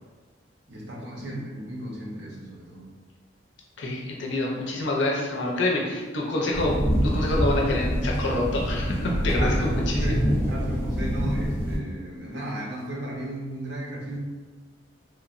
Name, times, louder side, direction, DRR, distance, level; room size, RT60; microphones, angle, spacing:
voice 1, 0.7-2.8 9.0-14.2, right 1 dB, 60° right, -3 dB, 0.6 m, -35 dB
voice 2, 3.8-6.7 7.0-10.1, left 2 dB, 65° left, -2 dB, 0.5 m, -27 dB
sound 1, 6.5-11.8, equal, 10° left, 0.4 m, -25 dB
3.2 x 2.1 x 2.4 m, 1.4 s
head